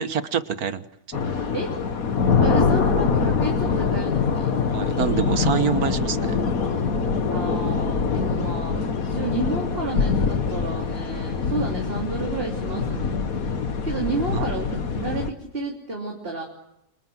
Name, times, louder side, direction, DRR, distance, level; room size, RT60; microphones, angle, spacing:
voice 1, 0.0-1.5 4.7-6.4 14.3-14.4, right 7 dB, 70° right, 12 dB, 1.7 m, -26 dB
sound 1, 1.1-15.3, left 5 dB, 65° left, 2.0 m, -24 dB
voice 2, 2.4-4.6 7.3-13.3 13.8-16.4, right 2 dB, 35° right, 0 dB, 3.4 m, -31 dB
29.5 x 26.0 x 7.7 m, 0.82 s
omnidirectional pair, 1.6 m